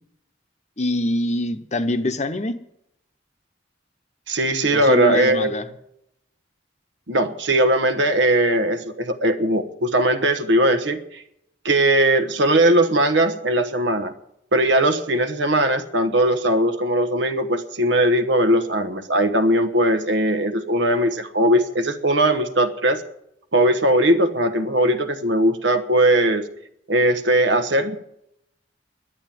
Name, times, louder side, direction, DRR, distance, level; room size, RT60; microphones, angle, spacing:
voice 1, 0.8-2.6 4.7-5.6, left 2 dB, 35° left, 10 dB, 0.8 m, -24 dB
voice 2, 4.3-5.5 7.1-11.2 11.6-14.1 14.5-23.0 23.5-26.5 26.9-28.0, right 1 dB, 75° right, 11 dB, 1.2 m, -19 dB
11.5 x 8.7 x 9.1 m, 0.78 s
head